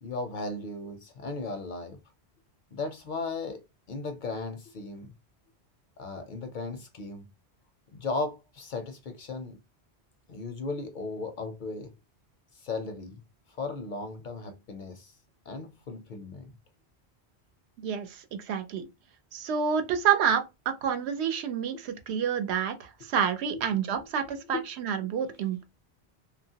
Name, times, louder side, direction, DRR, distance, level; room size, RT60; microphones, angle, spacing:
voice 1, 0.0-2.0 2.7-3.6 3.9-5.1 6.0-7.3 7.9-9.6 10.3-11.9 12.6-13.2 13.6-15.1 15.5-16.5 23.5-24.6, left 3 dB, 60° left, 0.6 m, -36 dB
voice 2, 17.8-18.9 19.3-25.6, right 7 dB, 80° right, 0.9 m, -28 dB
2.8 x 2.3 x 2.7 m
omnidirectional pair, 1.1 m